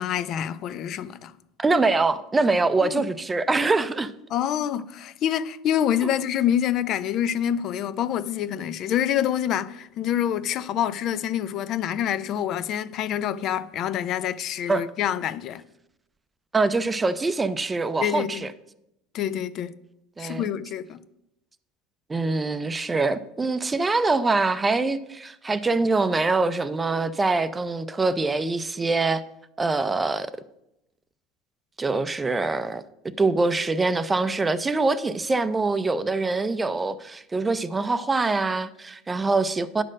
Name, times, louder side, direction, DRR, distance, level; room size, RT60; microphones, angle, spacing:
voice 1, 0.0-1.3 2.8-3.0 4.3-15.6 18.0-18.5 19.1-19.8 20.2-21.0, left 10 dB, 50° left, 0.4 m, -26 dB
voice 2, 1.6-4.1 6.0-6.1 14.7-14.8 16.5-18.5 20.2-20.5 22.1-29.2 29.6-30.3 31.8-32.8 33.2-39.8, right 3 dB, 15° right, 0.5 m, -24 dB
9.8 x 4.3 x 6.3 m
supercardioid pair, 100°, 0 cm